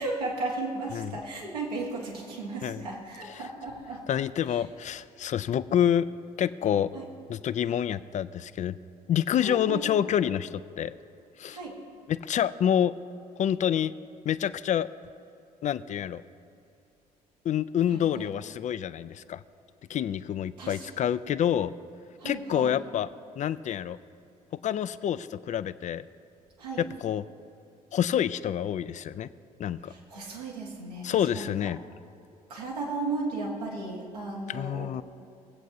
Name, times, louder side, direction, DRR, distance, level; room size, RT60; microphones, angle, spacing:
voice 1, 0.0-4.0 4.5-4.6 6.9-7.1 9.4-9.8 11.5-11.8 17.9-18.3 20.6-20.9 22.2-22.8 26.6-26.8 29.8-31.5 32.5-35.0, right 3 dB, 80° right, -2 dB, 1.5 m, -35 dB
voice 2, 4.1-6.1 6.4-6.9 7.3-8.8 9.1-10.9 11.4-11.6 12.1-13.0 13.4-13.9 14.3-14.9 15.6-16.2 17.4-19.4 19.9-21.7 22.2-23.1 23.4-24.0 24.6-26.0 26.8-27.3 27.9-29.3 29.6-29.9 31.0-31.8 34.5-35.0, left 10 dB, 40° left, 15 dB, 0.4 m, -27 dB
19.5 x 8.1 x 2.7 m, 2.7 s
figure-of-eight pair, 50°, 20 cm